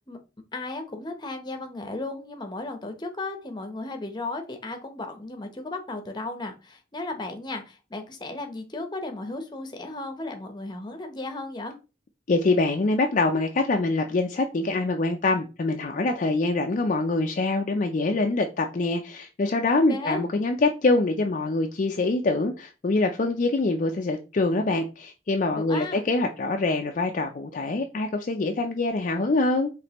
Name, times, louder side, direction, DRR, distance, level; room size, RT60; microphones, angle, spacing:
voice 1, 0.5-11.7 19.9-20.2 25.6-26.0, left 2 dB, 25° left, 0.8 m, -35 dB
voice 2, 12.3-29.7, left 2 dB, 45° left, 0.4 m, -24 dB
5.1 x 3.2 x 2.9 m
head